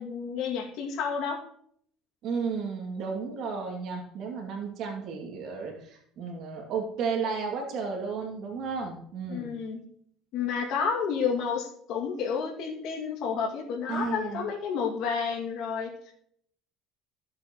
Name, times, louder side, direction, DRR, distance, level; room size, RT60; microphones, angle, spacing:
voice 1, 0.0-1.4 9.3-9.8 10.3-16.1, left 6 dB, 65° left, 1 dB, 2.3 m, -30 dB
voice 2, 2.2-9.6 13.9-14.5, right 5 dB, 55° right, 0 dB, 2.5 m, -33 dB
15.0 x 7.6 x 3.1 m, 0.66 s
cardioid pair, 140°, 0 cm